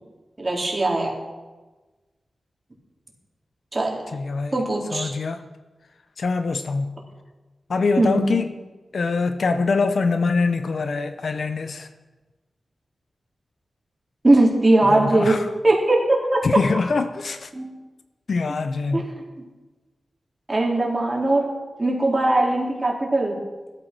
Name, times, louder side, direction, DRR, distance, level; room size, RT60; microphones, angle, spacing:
voice 1, 0.4-1.1 3.7-4.0 4.5-5.1 8.0-8.3 14.2-15.4 15.6-16.0 16.3-16.4 17.5-17.7 18.9-19.0 20.5-21.5 21.8-23.4, right 2 dB, 25° right, 4.0 m, -20 dB
voice 2, 4.1-4.5 4.9-5.4 6.2-7.0 7.7-8.5 8.9-11.9 14.9-15.5 16.4-17.5 18.3-19.1, left 4 dB, 65° left, 0.9 m, -24 dB
16.5 x 13.5 x 6.2 m
wide cardioid pair, 125°, 0 cm